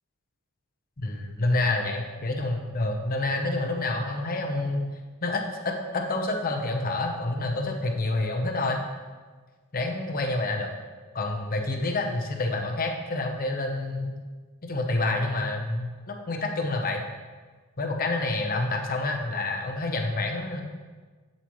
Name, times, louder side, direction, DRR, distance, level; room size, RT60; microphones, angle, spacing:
voice 1, 1.0-4.8 5.2-8.8 9.7-10.7 11.1-14.2 14.6-17.0 17.8-20.6, left 2 dB, 40° left, 2 dB, 0.9 m, -28 dB
8.2 x 7.9 x 3.1 m, 1.4 s
head